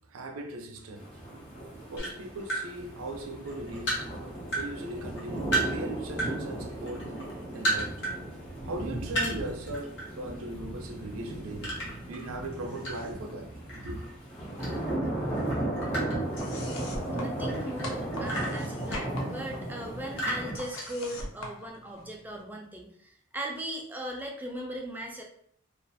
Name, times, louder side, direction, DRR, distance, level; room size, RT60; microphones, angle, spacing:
voice 1, 0.1-1.1 1.9-4.0 4.5-8.0 8.6-14.0, right 1 dB, 90° right, 5 dB, 0.5 m, -39 dB
sound 1, 1.0-20.5, right 1 dB, 30° left, 0.9 m, -36 dB
sound 2, 2.0-2.7 3.2-4.7 5.0-6.3 6.7-8.2 8.5-8.6 9.1-10.1 10.4-10.6 11.6-13.2 13.7-15.1 15.4-17.0 17.5-19.5 20.1-21.5, right 1 dB, 60° left, 0.9 m, -33 dB
sound 3, 12.5-13.3 13.6-14.6 14.9-22.4, left 2 dB, 80° left, 0.5 m, -44 dB
voice 2, 17.1-25.2, right 1 dB, 10° right, 1 dB, 0.4 m, -38 dB
2.4 x 2.3 x 2.6 m, 0.65 s
head